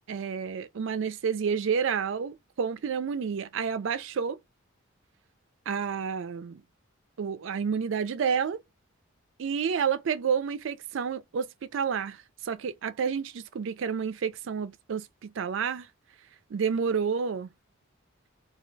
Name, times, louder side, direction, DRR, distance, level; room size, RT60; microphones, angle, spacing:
voice 1, 0.1-4.4 5.7-6.6 7.2-8.6 9.4-12.2 12.4-15.9 16.5-17.5, right 6 dB, 65° right, 0.4 m, -30 dB
2.3 x 2.2 x 3.8 m
head